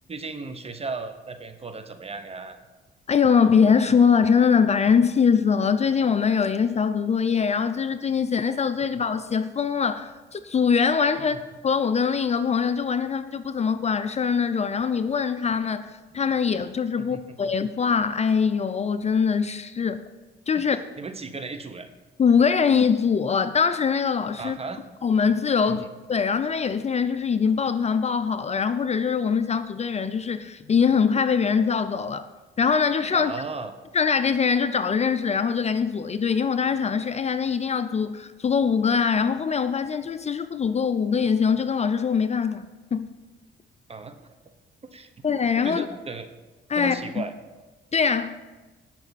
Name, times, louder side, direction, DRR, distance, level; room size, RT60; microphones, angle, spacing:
voice 1, 0.1-2.6 8.9-9.0 11.2-11.4 17.0-17.5 20.6-20.7 21.0-21.9 24.4-24.8 25.7-25.9 33.1-33.7 43.9-44.3 44.9-45.1 45.6-46.3 46.7-47.3, right 4 dB, 30° right, 9 dB, 1.1 m, -36 dB
voice 2, 3.1-11.4 11.6-20.0 20.5-20.8 22.2-24.6 25.0-32.3 32.6-33.3 33.9-42.7 42.9-43.1 45.2-45.9 46.7-47.2 47.9-48.4, left 6 dB, 35° left, 11 dB, 0.5 m, -23 dB
18.0 x 6.2 x 4.2 m, 1.2 s
cardioid pair, 90°, 20 cm